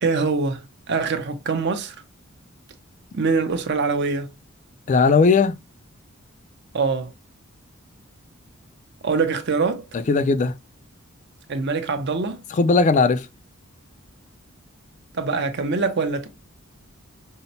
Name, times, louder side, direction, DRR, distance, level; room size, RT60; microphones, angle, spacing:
voice 1, 0.0-1.9 3.1-4.3 6.7-7.1 9.0-9.9 11.5-12.4 15.1-16.3, right 4 dB, 55° right, 0.6 m, -24 dB
voice 2, 4.9-5.6 10.1-10.5 12.5-13.3, left 4 dB, 35° left, 0.3 m, -17 dB
5.5 x 2.0 x 2.7 m
head